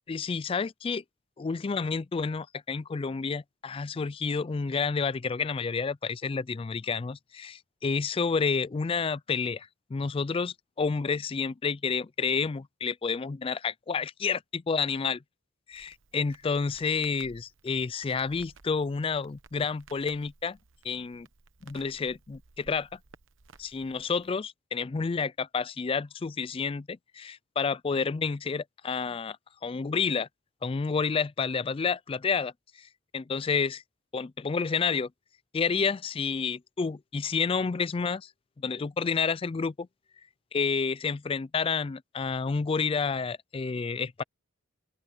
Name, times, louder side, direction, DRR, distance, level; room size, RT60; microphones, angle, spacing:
voice 1, 0.1-1.0 1.4-15.2 15.7-20.6 20.8-21.3 21.6-23.0 23.6-29.4 29.6-30.3 30.6-32.5 32.8-33.8 34.1-35.1 35.5-38.3 38.6-39.9 40.5-44.2, left 5 dB, 25° left, 0.3 m, -30 dB
Crackle, 15.7-24.3, right 4 dB, 60° right, 1.0 m, -57 dB
open air
head